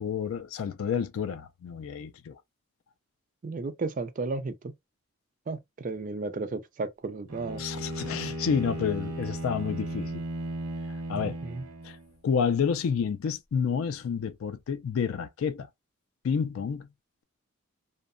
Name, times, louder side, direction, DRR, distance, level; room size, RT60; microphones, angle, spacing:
voice 1, 0.0-2.4 7.6-10.2 11.1-11.4 11.8-12.0 12.2-15.7 16.2-16.9, left 6 dB, 70° left, 0.3 m, -29 dB
voice 2, 3.4-4.7 5.5-7.6 11.2-11.7, right 3 dB, 35° right, 0.3 m, -34 dB
Bowed string instrument, 7.3-12.1, right 1 dB, 80° right, 0.7 m, -36 dB
2.7 x 2.1 x 2.4 m
head